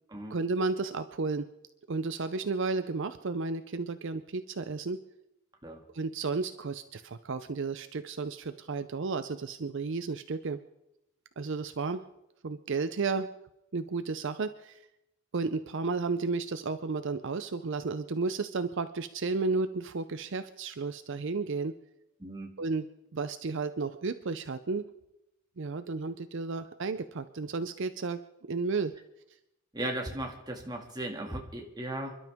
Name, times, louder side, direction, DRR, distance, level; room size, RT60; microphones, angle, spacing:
voice 1, 0.3-1.5 1.9-5.0 5.9-10.6 11.4-12.0 12.4-13.3 13.7-14.8 15.3-21.7 22.6-22.9 23.1-24.9 25.6-28.2 28.5-28.9, right 4 dB, 60° right, 11 dB, 0.6 m, -32 dB
voice 2, 22.2-22.5 29.7-32.2, right 1 dB, 20° right, 2 dB, 2.1 m, -36 dB
28.5 x 12.0 x 3.6 m, 0.86 s
head